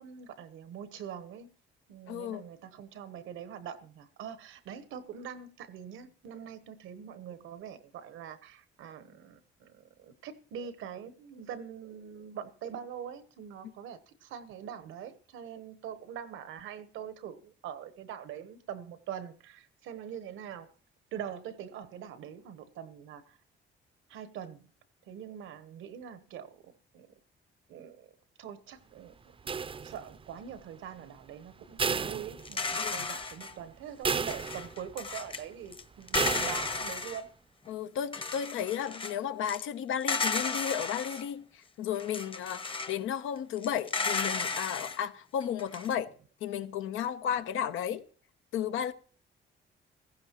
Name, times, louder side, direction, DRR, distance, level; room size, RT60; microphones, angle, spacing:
voice 1, 0.0-1.5 1.9-20.7 21.1-23.4 24.1-24.7 25.1-27.1 27.7-28.1 28.4-29.1 29.8-37.3, right 8 dB, 90° right, 1.1 m, -43 dB
voice 2, 2.1-2.4 32.8-33.1 37.7-46.1 46.4-48.0 48.5-48.9, left 9 dB, 85° left, 0.9 m, -33 dB
sound 1, 29.5-30.3 31.8-32.9 33.3-33.4 34.0-34.9 36.1-36.9, right 5 dB, 25° right, 0.5 m, -32 dB
sound 2, 32.4-33.5 34.0-35.4 35.7-35.8 36.1-37.2 37.7-37.8 38.1-39.1 39.5-39.6 40.0-41.2 41.9-43.0 43.6-45.0 45.4-45.9, left 4 dB, 25° left, 0.9 m, -34 dB
15.5 x 15.0 x 3.0 m
cardioid pair, 90°, 20 cm